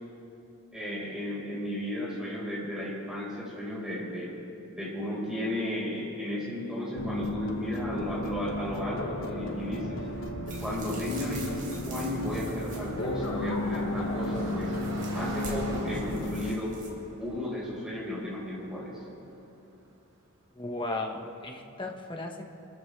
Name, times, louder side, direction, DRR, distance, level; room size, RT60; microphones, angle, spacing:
voice 1, 0.7-4.3 4.7-10.0 10.6-14.7 15.1-16.7 17.2-18.9, left 1 dB, 5° right, -7 dB, 4.8 m, -34 dB
sound 1, 7.0-16.6, left 1 dB, 70° left, 1.3 m, -34 dB
Car passing by, 8.2-19.9, right 1 dB, 70° right, 3.8 m, -45 dB
sound 2, 10.5-16.9, right 2 dB, 40° right, 3.9 m, -45 dB
voice 2, 20.5-22.4, left 2 dB, 25° left, 2 dB, 1.3 m, -35 dB
28.0 x 14.0 x 3.4 m, 2.8 s
head